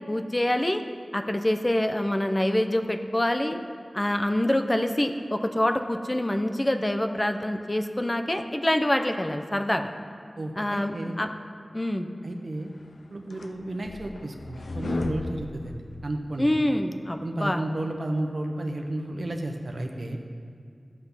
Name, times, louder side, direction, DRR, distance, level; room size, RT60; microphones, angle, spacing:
voice 1, 0.1-0.8 1.1-3.6 3.9-9.9 10.6-11.3 11.7-12.1 16.4-17.6, left 1 dB, 25° left, 6 dB, 0.7 m, -26 dB
voice 2, 10.4-11.2 12.2-12.7 13.1-16.5 17.2-20.2, right 1 dB, 65° right, 3 dB, 1.1 m, -32 dB
sound 1, 12.8-16.5, left 2 dB, 85° left, 0.6 m, -36 dB
14.0 x 5.9 x 5.7 m, 2.3 s
wide cardioid pair, 55°, 0 cm